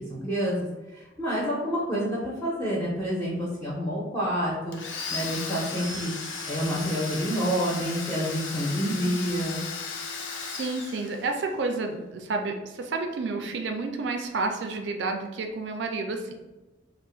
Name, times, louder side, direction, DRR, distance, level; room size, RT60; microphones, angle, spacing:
voice 1, 0.1-0.6 0.9-6.1 6.5-9.6, equal, 15° left, -6 dB, 0.5 m, -28 dB
Domestic sounds home sounds, 4.7-11.5, left 4 dB, 75° left, 0.5 m, -35 dB
voice 2, 8.8-9.4 10.4-16.5, right 3 dB, 65° right, 4 dB, 0.4 m, -31 dB
2.4 x 2.1 x 3.7 m, 1.1 s
head